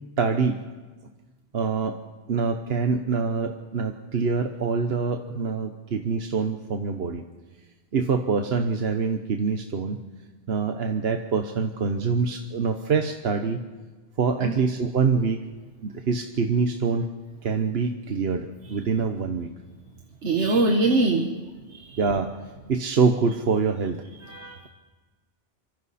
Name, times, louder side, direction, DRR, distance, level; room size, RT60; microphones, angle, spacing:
voice 1, 0.2-0.6 1.5-2.0 2.3-7.2 7.9-10.0 10.5-13.6 14.2-15.4 15.8-17.1 17.4-19.5 22.0-22.3 22.7-24.0, right 5 dB, 65° right, 5 dB, 1.2 m, -25 dB
voice 2, 20.2-21.3 21.7-22.0 24.2-24.7, right 2 dB, 85° right, 2 dB, 1.8 m, -23 dB
27.0 x 24.0 x 4.2 m, 1.3 s
omnidirectional pair, 1.1 m